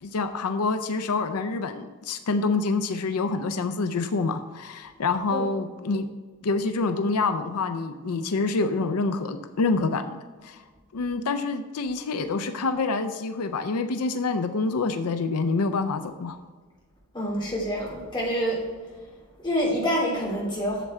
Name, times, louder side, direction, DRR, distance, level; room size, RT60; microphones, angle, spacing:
voice 1, 0.0-6.1 6.4-10.1 10.4-10.6 10.9-16.4, left 3 dB, 90° left, 9 dB, 0.5 m, -27 dB
voice 2, 17.1-18.6 19.4-20.9, equal, 20° left, -4 dB, 3.0 m, -27 dB
8.2 x 7.3 x 4.3 m, 1.4 s
head